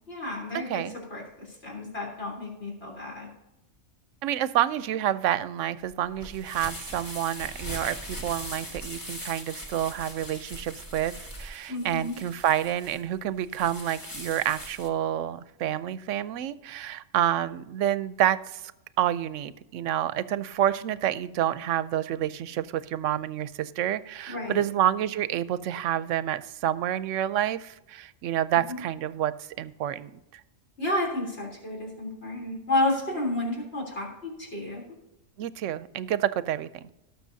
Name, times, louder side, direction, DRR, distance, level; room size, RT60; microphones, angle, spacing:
voice 1, 0.1-0.8 1.1-3.3 11.7-12.2 24.3-24.6 28.7-28.8 30.8-34.8, left 2 dB, 55° left, -1 dB, 3.6 m, -31 dB
voice 2, 4.2-18.6 19.0-30.4 35.4-36.8, right 11 dB, 80° right, 15 dB, 0.9 m, -28 dB
sound 1, 5.8-14.9, equal, 15° left, 1.4 m, -40 dB
18.5 x 6.6 x 2.7 m, 0.92 s
omnidirectional pair, 1.3 m